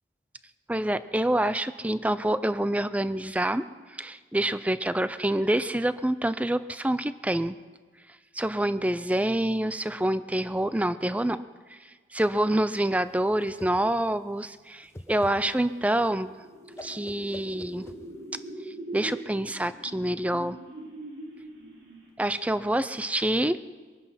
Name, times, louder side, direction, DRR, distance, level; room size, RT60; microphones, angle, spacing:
voice 1, 0.7-7.6 8.3-11.4 11.7-16.3 16.8-17.9 18.9-20.6 22.2-23.6, right 1 dB, 10° right, 13 dB, 0.4 m, -27 dB
Whoosh swoosh swish, 13.0-18.5, left 1 dB, 15° left, 1.0 m, -47 dB
sound 1, 15.8-22.3, right 1 dB, 65° right, 4.2 m, -43 dB
23.0 x 9.8 x 5.8 m, 1.4 s
head